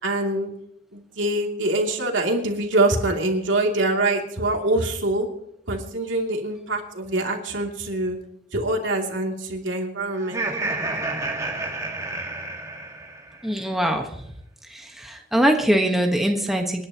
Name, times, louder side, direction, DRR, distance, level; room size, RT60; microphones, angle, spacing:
voice 1, 0.0-0.5 0.9-5.3 5.7-8.2 8.5-10.4, right 2 dB, 75° right, 1 dB, 2.8 m, -24 dB
Laughter, 10.2-13.4, right 2 dB, 15° right, 1.9 m, -30 dB
voice 2, 13.4-14.2 14.7-16.9, right 1 dB, ahead, 2 dB, 1.3 m, -22 dB
28.5 x 10.5 x 3.0 m, 0.75 s
head